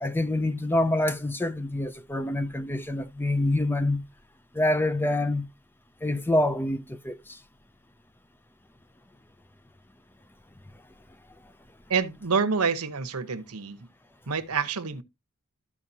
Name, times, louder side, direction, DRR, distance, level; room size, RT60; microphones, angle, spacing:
voice 1, 0.0-4.0 4.5-5.5 6.0-7.4, left 1 dB, 10° left, 0.4 m, -26 dB
voice 2, 11.9-13.8 14.3-15.0, right 5 dB, 85° right, 1.0 m, -27 dB
14.0 x 4.8 x 2.8 m
head